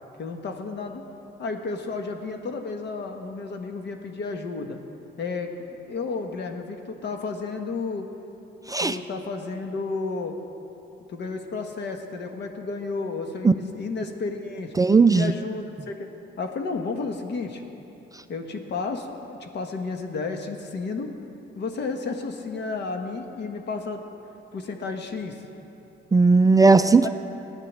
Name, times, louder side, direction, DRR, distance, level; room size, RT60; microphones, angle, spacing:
voice 1, 0.2-1.0 1.4-4.8 5.2-8.0 8.8-10.4 11.1-14.7 15.1-16.1 16.4-17.6 18.3-21.1 21.5-24.0 24.5-25.4 27.0-27.1, left 4 dB, 60° left, 5 dB, 1.4 m, -32 dB
voice 2, 14.8-15.3 26.1-27.1, right 4 dB, 20° right, 10 dB, 0.4 m, -16 dB
14.5 x 9.8 x 7.4 m, 2.9 s
cardioid pair, 90°, 20 cm